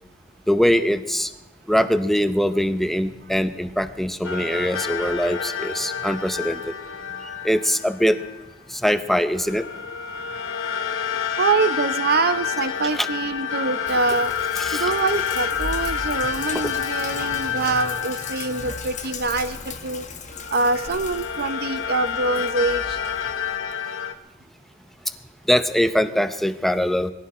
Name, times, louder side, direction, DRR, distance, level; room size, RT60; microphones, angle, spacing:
voice 1, 0.5-1.3 1.7-6.8 7.2-8.2 8.7-9.7 12.8-13.1 14.6-14.9 16.5-16.7 17.5-17.7 18.6-18.7 25.5-27.1, equal, ahead, 9 dB, 0.7 m, -22 dB
sound 1, 4.2-8.4 9.3-19.8 20.3-24.1, left 7 dB, 70° left, 0.9 m, -29 dB
voice 2, 11.4-14.3 14.7-20.0 20.5-22.8, right 3 dB, 50° right, 12 dB, 0.8 m, -24 dB
Sink (filling or washing), 13.9-23.6, left 3 dB, 40° left, 1.4 m, -37 dB
20.5 x 15.0 x 4.3 m, 0.91 s
head